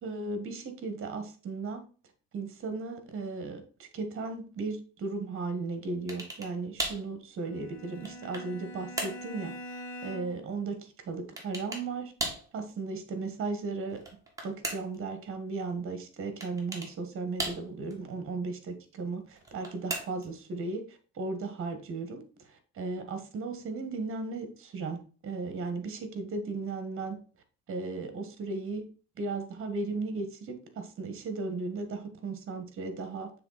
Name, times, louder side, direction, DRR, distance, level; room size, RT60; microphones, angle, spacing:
voice 1, 0.0-1.8 2.3-12.1 12.5-14.0 14.4-27.2 27.7-28.9 29.2-33.3, right 3 dB, 45° right, 8 dB, 1.4 m, -36 dB
sound 1, 6.1-6.5 6.8-7.1 7.7-8.5 9.0-9.3 11.4-11.9 12.2-12.5 13.9-15.0 16.4-16.9 17.4-17.9 19.4-20.3, right 2 dB, 10° right, 1.8 m, -36 dB
Bowed string instrument, 7.4-10.5, equal, 60° left, 1.6 m, -44 dB
6.9 x 3.4 x 4.0 m, 0.38 s
cardioid pair, 115°, 30 cm